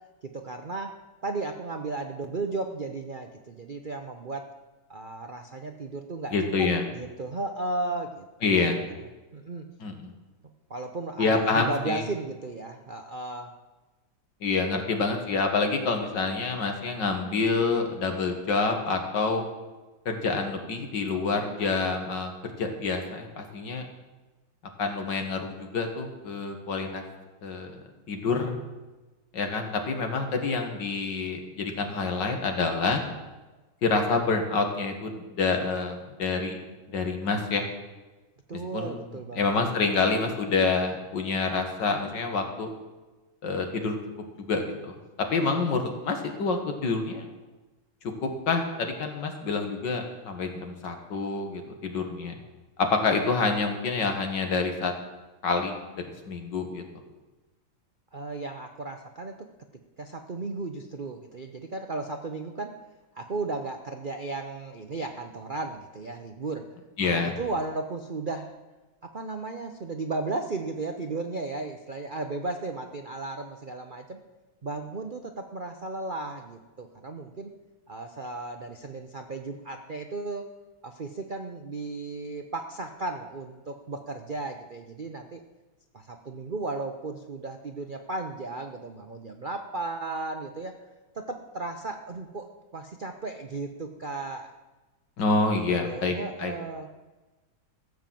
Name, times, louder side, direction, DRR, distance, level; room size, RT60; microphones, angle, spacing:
voice 1, 0.2-0.9 1.2-4.4 4.9-8.8 9.3-9.7 10.7-13.5 38.5-39.5 58.1-59.5 60.0-62.7 63.1-66.7 67.0-68.6 69.0-74.2 74.6-77.5 77.9-80.5 80.8-85.4 85.9-90.8 91.1-94.5 95.8-96.9, right 3 dB, 70° right, 5 dB, 0.4 m, -35 dB
voice 2, 6.3-6.8 8.4-8.8 9.8-10.1 11.2-12.0 14.4-19.4 20.1-23.9 24.8-27.0 27.4-27.8 28.1-28.5 29.3-33.0 33.8-36.6 36.9-37.7 38.7-39.1 39.4-42.7 43.4-44.0 44.4-45.0 45.3-47.3 48.2-52.4 52.8-54.9 55.4-56.8 67.0-67.4 95.2-96.1 96.4-96.5, left 4 dB, 60° left, 4 dB, 2.3 m, -27 dB
15.5 x 7.2 x 7.7 m, 1.2 s
omnidirectional pair, 2.2 m